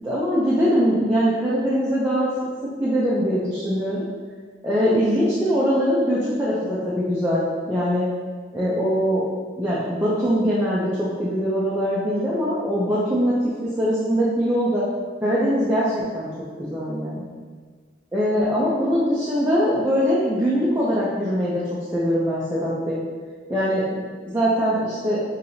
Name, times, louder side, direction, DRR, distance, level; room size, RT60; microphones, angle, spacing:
voice 1, 0.0-2.3 2.8-4.1 4.6-8.1 8.5-9.2 9.6-13.3 13.6-14.8 15.2-16.3 16.6-17.3 18.1-23.0 23.5-24.0 24.2-25.2, equal, 10° right, -9 dB, 0.5 m, -22 dB
5.9 x 2.8 x 2.7 m, 1.5 s
head